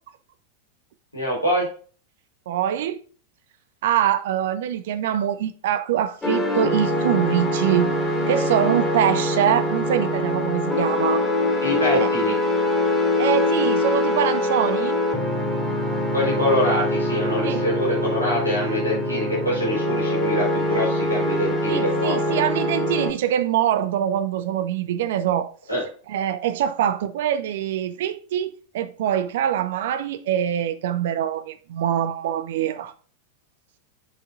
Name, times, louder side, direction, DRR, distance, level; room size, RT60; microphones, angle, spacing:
voice 1, 1.1-1.7 11.6-12.3 16.1-22.4 25.7-25.8, equal, 85° left, 3.9 m, -25 dB
voice 2, 2.5-3.0 3.8-7.9 8.3-11.3 11.9-12.1 13.2-15.0 17.4-17.6 21.7-25.5 26.1-32.9, right 10 dB, 55° right, 0.6 m, -24 dB
sound 1, 6.2-23.1, left 1 dB, 15° left, 3.3 m, -23 dB
10.0 x 5.4 x 2.5 m
figure-of-eight pair, 90°, 0 cm